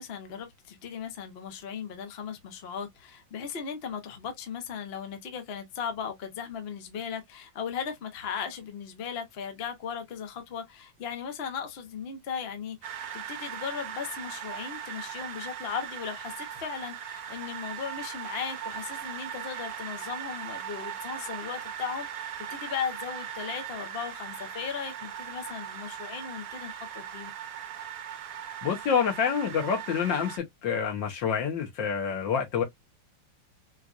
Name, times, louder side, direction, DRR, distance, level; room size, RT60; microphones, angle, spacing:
voice 1, 0.0-27.3, left 7 dB, 45° left, 0.9 m, -37 dB
sound 1, 12.8-30.4, right 9 dB, 60° right, 1.0 m, -39 dB
voice 2, 28.6-32.6, left 7 dB, 75° left, 1.8 m, -27 dB
4.4 x 2.5 x 2.4 m
omnidirectional pair, 2.0 m